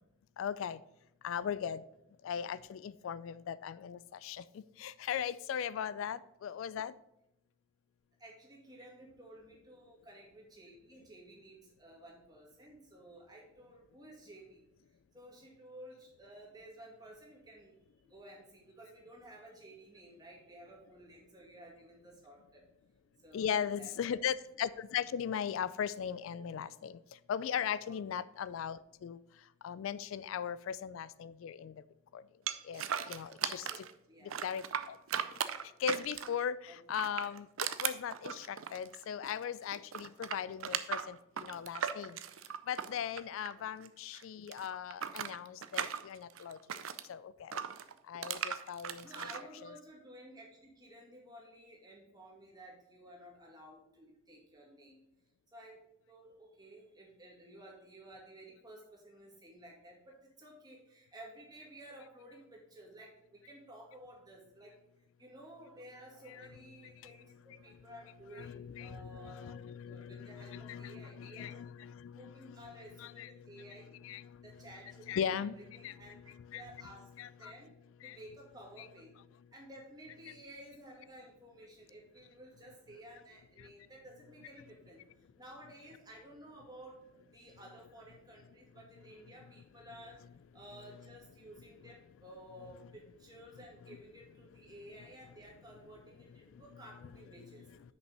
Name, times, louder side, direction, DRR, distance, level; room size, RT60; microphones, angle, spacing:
voice 1, 0.4-0.8 1.2-1.8 2.2-4.4 4.8-6.9 23.3-27.0 27.3-29.2 29.6-31.7 32.1-32.2 32.7-32.8 33.1-33.8 34.4-35.0 35.8-37.5 37.8-42.2 42.7-46.6 47.1-47.6 48.1-49.3 66.3-66.5 68.3-72.6 73.0-73.3 74.0-74.3 75.1-75.6 75.8-75.9 76.5-76.6 77.2-77.5 78.0-78.2 78.8-78.9, left 8 dB, 75° left, 18 dB, 0.3 m, -38 dB
voice 2, 8.2-14.6 15.1-17.7 18.0-22.6 23.2-24.2 27.9-28.0 32.6-32.7 33.6-34.6 36.7-36.8 43.6-43.7 46.3-46.8 48.4-48.6 49.0-55.0 55.5-64.7 65.2-69.6 69.9-71.6 72.2-74.0 74.4-76.2 76.5-77.7 78.0-79.2 79.5-85.0 85.4-90.2 90.5-97.7, right 1 dB, 20° right, -2 dB, 2.3 m, -54 dB
sound 1, 32.5-33.9 34.3-36.4 36.9-39.4 39.7-43.9 44.1-47.1 47.5-49.4, right 8 dB, 80° right, 0.6 m, -38 dB
6.2 x 5.3 x 6.4 m, 0.84 s
head